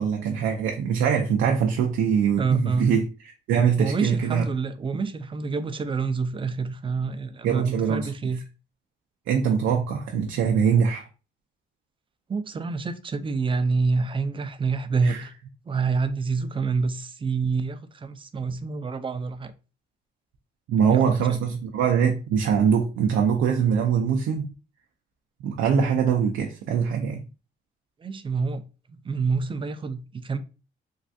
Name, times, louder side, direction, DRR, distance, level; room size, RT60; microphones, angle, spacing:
voice 1, 0.0-3.0 3.5-4.4 7.4-8.1 9.3-11.1 15.0-15.2 20.7-24.5 25.4-27.2, right 7 dB, 80° right, 0.5 m, -23 dB
voice 2, 2.4-2.9 3.8-8.4 12.3-15.3 15.7-19.5 20.9-21.4 28.0-28.6 28.9-30.4, right 4 dB, 25° right, 0.4 m, -27 dB
3.3 x 2.3 x 2.6 m
cardioid pair, 90°, 20 cm